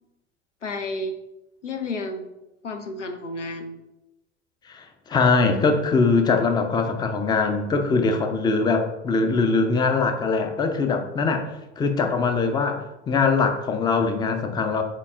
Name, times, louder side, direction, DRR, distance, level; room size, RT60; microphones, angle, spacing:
voice 1, 0.6-1.1 1.6-2.3 2.6-3.8, left 2 dB, 90° left, 7 dB, 0.5 m, -31 dB
voice 2, 4.7-11.5 11.8-14.8, left 4 dB, 10° left, 6 dB, 0.4 m, -22 dB
5.6 x 4.0 x 2.4 m, 0.94 s
figure-of-eight pair, 70°, 35 cm